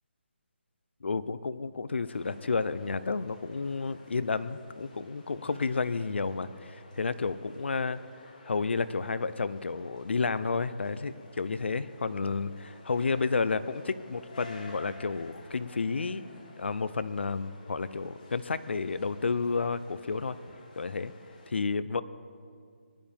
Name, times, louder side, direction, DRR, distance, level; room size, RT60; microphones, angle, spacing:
voice 1, 1.0-8.0 8.4-16.2 16.6-20.4 20.8-21.1 21.5-22.0, left 4 dB, 70° left, 14 dB, 0.6 m, -31 dB
sound 1, 2.0-21.5, left 2 dB, 40° left, 2.1 m, -54 dB
20.5 x 11.0 x 3.5 m, 2.1 s
hypercardioid pair, 175°, 6 cm